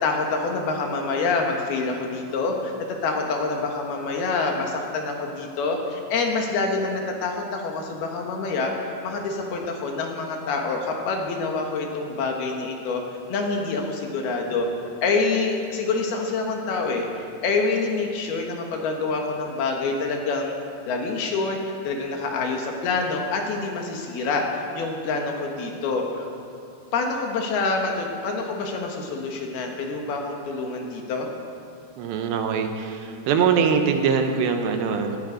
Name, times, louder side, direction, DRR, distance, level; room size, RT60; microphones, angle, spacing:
voice 1, 0.0-2.7 3.0-13.0 13.3-14.7 15.0-20.5 20.9-26.3 26.9-31.3, left 3 dB, 65° left, 1 dB, 3.0 m, -26 dB
voice 2, 32.0-35.2, right 6 dB, 75° right, 5 dB, 3.0 m, -23 dB
18.0 x 14.5 x 5.1 m, 2.5 s
omnidirectional pair, 5.2 m